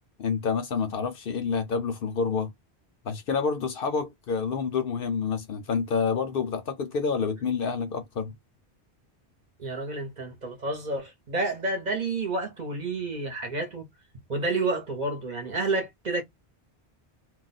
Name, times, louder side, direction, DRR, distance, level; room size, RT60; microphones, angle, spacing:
voice 1, 0.2-2.5 3.0-8.3, left 5 dB, 60° left, 0.7 m, -28 dB
voice 2, 9.6-13.9 14.3-16.2, right 2 dB, 45° right, 0.9 m, -30 dB
2.4 x 2.1 x 3.9 m
omnidirectional pair, 1.1 m